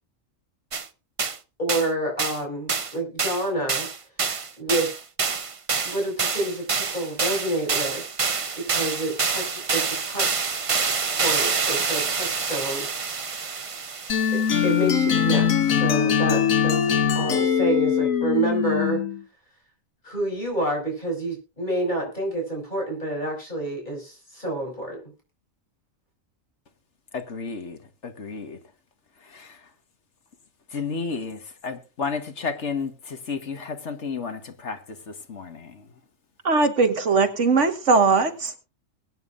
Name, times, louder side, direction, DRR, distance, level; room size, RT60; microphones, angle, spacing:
sound 1, 0.7-0.9 1.2-1.4 1.7-1.9 2.2-2.4 2.7-2.9 3.2-14.7, right 5 dB, 35° right, 0.6 m, -27 dB
voice 1, 1.6-3.9 4.6-4.9 5.8-8.0 8.5-10.5 11.1-12.9 14.3-19.0 20.0-25.0, right 1 dB, 35° left, 6.0 m, -28 dB
sound 2, 14.1-19.2, left 7 dB, 85° left, 1.5 m, -22 dB
voice 2, 27.1-28.6 29.2-29.6 30.7-35.9, left 5 dB, 60° left, 1.7 m, -32 dB
voice 3, 36.4-38.6, right 4 dB, 65° right, 2.0 m, -20 dB
22.0 x 9.3 x 2.5 m
omnidirectional pair, 1.4 m